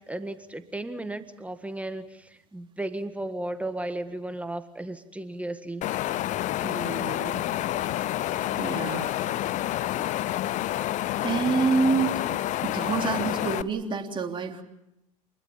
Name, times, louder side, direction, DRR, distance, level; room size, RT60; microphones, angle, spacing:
voice 1, 0.1-5.9, right 1 dB, 5° right, 10 dB, 1.6 m, -35 dB
Wind, 5.8-13.6, left 13 dB, 45° left, 1.0 m, -28 dB
voice 2, 6.6-7.5 8.6-9.1 11.2-12.2 12.6-14.6, right 5 dB, 30° right, 3 dB, 3.4 m, -27 dB
28.5 x 21.0 x 7.3 m, 0.85 s
hypercardioid pair, 85°, 18 cm